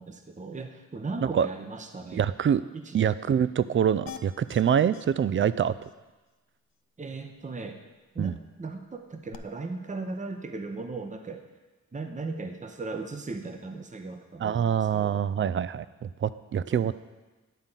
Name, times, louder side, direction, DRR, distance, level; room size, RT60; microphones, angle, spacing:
voice 1, 0.0-2.2 2.7-3.0 7.0-7.8 8.1-11.4 11.9-15.2 16.7-16.9, right 3 dB, 25° right, 6 dB, 0.8 m, -37 dB
voice 2, 2.1-2.6 2.9-5.7 8.2-8.3 14.4-16.9, right 8 dB, 40° right, 16 dB, 0.4 m, -25 dB
sound 1, 4.1-4.6 4.9-5.1 5.4-5.5 5.8-5.9 9.3-9.4, left 9 dB, 85° left, 0.5 m, -43 dB
10.0 x 3.8 x 7.3 m, 1.2 s
cardioid pair, 60°, 33 cm